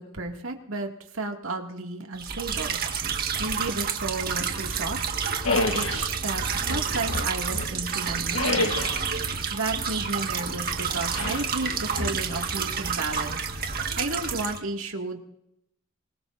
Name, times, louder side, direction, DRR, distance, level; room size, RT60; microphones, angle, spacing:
voice 1, 0.0-2.8 3.4-5.0 5.7-6.4 6.7-8.9 9.5-13.5 14.0-15.2, right 2 dB, 85° right, 2 dB, 2.3 m, -33 dB
sound 1, 2.2-14.6, right 6 dB, 45° right, 1.7 m, -29 dB
sound 2, 5.4-6.1 6.6-7.8 8.3-9.1 11.0-11.5 11.9-12.6, left 3 dB, 85° left, 1.4 m, -29 dB
25.0 x 21.0 x 2.6 m, 0.77 s
head